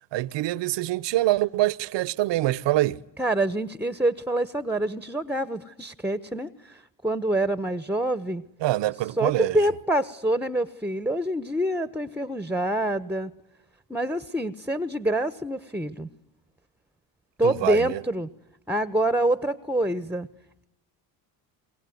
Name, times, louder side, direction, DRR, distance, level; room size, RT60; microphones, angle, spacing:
voice 1, 0.1-3.0 8.6-9.6 17.4-18.0, right 16 dB, 60° right, 1.0 m, -25 dB
voice 2, 3.2-8.4 9.2-13.3 13.9-16.1 17.4-18.3 18.7-20.3, right 1 dB, 5° right, 1.2 m, -26 dB
28.0 x 22.5 x 9.5 m
supercardioid pair, 75°, 47 cm